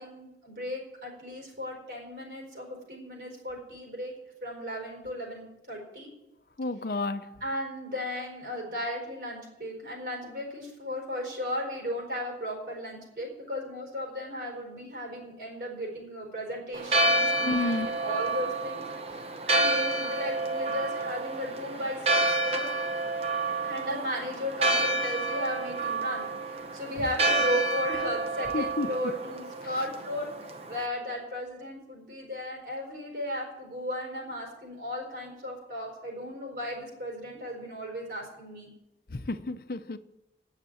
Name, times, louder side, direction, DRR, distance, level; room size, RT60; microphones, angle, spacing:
voice 1, 0.0-4.1 4.4-6.1 6.8-7.0 7.4-18.8 19.1-22.7 23.6-38.7, left 1 dB, 60° right, 4.4 m, -35 dB
voice 2, 6.6-7.4 17.4-17.9 28.5-28.9 39.1-40.0, left 2 dB, 55° left, 0.7 m, -31 dB
Church bell, 16.7-30.8, right 2 dB, 35° right, 1.0 m, -29 dB
9.7 x 7.4 x 9.2 m
head